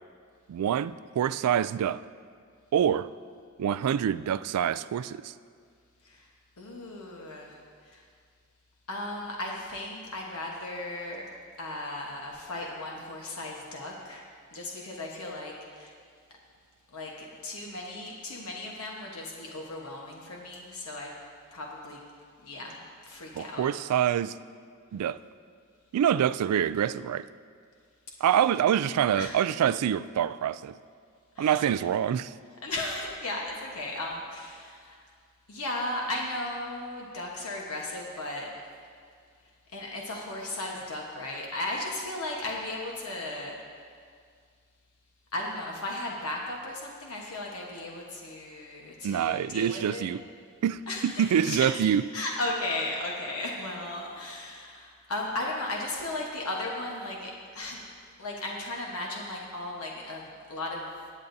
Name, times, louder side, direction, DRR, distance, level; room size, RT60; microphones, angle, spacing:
voice 1, 0.5-2.0 2.7-3.1 3.6-5.3 23.3-24.4 24.9-25.2 25.9-27.3 28.2-30.8 31.4-32.3 49.0-50.2 50.6-52.1, right 9 dB, 85° right, 0.3 m, -26 dB
voice 2, 6.6-7.6 7.8-8.0 8.9-11.2 11.6-14.2 14.5-15.9 16.9-21.1 21.5-22.0 22.4-22.8 23.0-23.7 29.1-29.3 31.3-31.7 32.6-35.0 35.5-38.5 39.7-43.5 45.3-50.0 50.9-51.6 52.1-57.8 58.2-60.9, left 2 dB, 70° left, 1.2 m, -36 dB
19.0 x 8.4 x 2.7 m
head